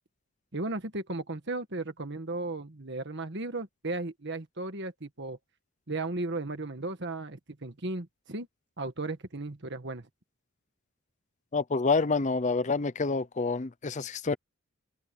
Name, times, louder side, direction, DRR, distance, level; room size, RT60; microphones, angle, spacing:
voice 1, 0.5-5.4 5.9-8.5 8.8-10.1, right 2 dB, 50° right, 1.6 m, -35 dB
voice 2, 11.5-14.4, left 4 dB, 35° left, 0.5 m, -28 dB
open air
head